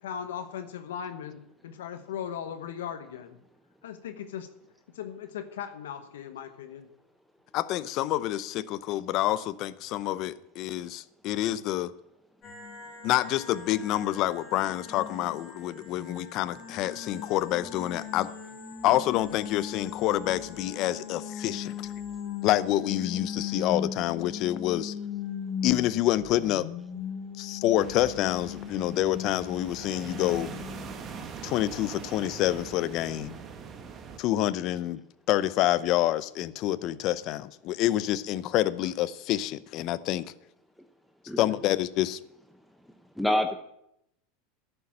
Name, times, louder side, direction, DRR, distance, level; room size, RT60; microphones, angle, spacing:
voice 1, 0.0-3.4 3.8-4.5 4.9-6.9, left 8 dB, 90° left, 1.0 m, -38 dB
voice 2, 7.5-11.9 13.0-18.3 18.8-21.9 22.4-24.9 25.6-26.7 27.4-30.5 31.4-33.4 34.2-35.0 35.3-40.2 41.4-42.2, left 14 dB, 50° left, 0.6 m, -27 dB
sound 1, 12.4-30.9, left 7 dB, 30° left, 3.7 m, -38 dB
sound 2, 27.8-34.2, right 6 dB, 30° right, 1.4 m, -42 dB
voice 3, 42.8-43.6, left 1 dB, ahead, 0.8 m, -28 dB
11.0 x 6.9 x 8.6 m
supercardioid pair, 125°, 0 cm